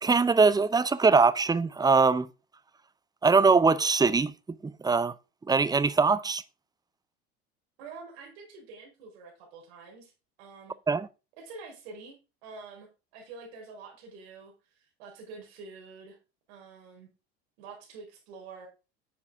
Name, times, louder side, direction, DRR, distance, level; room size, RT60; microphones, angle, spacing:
voice 1, 0.0-2.3 3.2-4.3 4.6-5.1 5.5-6.4 10.9-11.1, right 4 dB, 10° right, 0.7 m, -22 dB
voice 2, 7.8-10.1 10.4-10.7 11.4-16.2 16.5-17.1 17.6-18.7, right 4 dB, 70° right, 4.9 m, -47 dB
9.8 x 7.1 x 3.7 m
hypercardioid pair, 75°, 32 cm